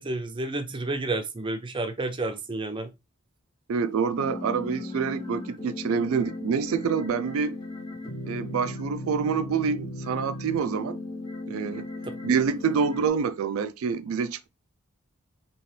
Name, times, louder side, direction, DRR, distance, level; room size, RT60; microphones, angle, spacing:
voice 1, 0.0-2.9 12.0-12.1, right 2 dB, 25° right, 0.6 m, -30 dB
voice 2, 3.7-7.6 8.3-11.0 11.5-11.9 12.2-14.5, right 6 dB, 80° right, 0.4 m, -27 dB
sound 1, 4.1-13.1, left 2 dB, 25° left, 1.1 m, -37 dB
4.2 x 2.9 x 3.2 m
head